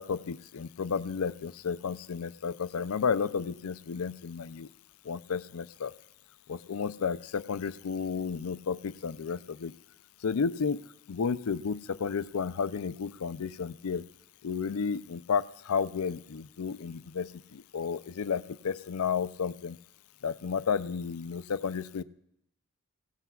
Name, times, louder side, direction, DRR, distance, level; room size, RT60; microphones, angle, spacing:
voice 1, 0.0-4.7 5.1-5.9 6.5-9.7 10.2-10.8 11.1-14.0 14.4-19.8 20.2-22.0, left 6 dB, 90° left, 14 dB, 0.5 m, -32 dB
23.5 x 17.0 x 2.4 m, 0.77 s
head